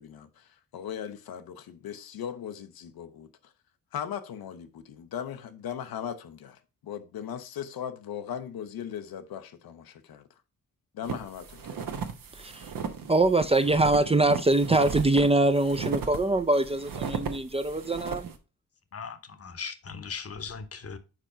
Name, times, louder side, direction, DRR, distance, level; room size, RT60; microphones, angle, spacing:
voice 1, 0.0-3.5 3.9-10.3 10.9-11.8, left 9 dB, 85° left, 0.7 m, -38 dB
sound 1, 11.0-18.4, right 6 dB, 70° right, 0.9 m, -36 dB
voice 2, 12.4-12.7 13.1-18.3, right 2 dB, 15° right, 0.4 m, -23 dB
voice 3, 18.9-21.0, left 5 dB, 40° left, 0.9 m, -38 dB
4.8 x 4.5 x 4.9 m
cardioid pair, 70°, 35 cm